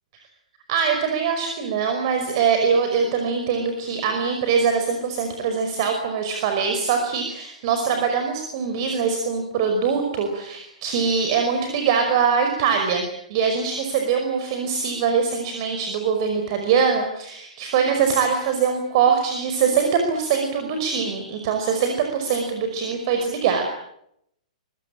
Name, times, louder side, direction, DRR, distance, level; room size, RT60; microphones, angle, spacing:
voice 1, 0.7-13.0 13.3-23.7, right 6 dB, 45° right, 5 dB, 5.3 m, -22 dB
25.0 x 23.5 x 8.9 m, 0.76 s
figure-of-eight pair, 110°, 4 cm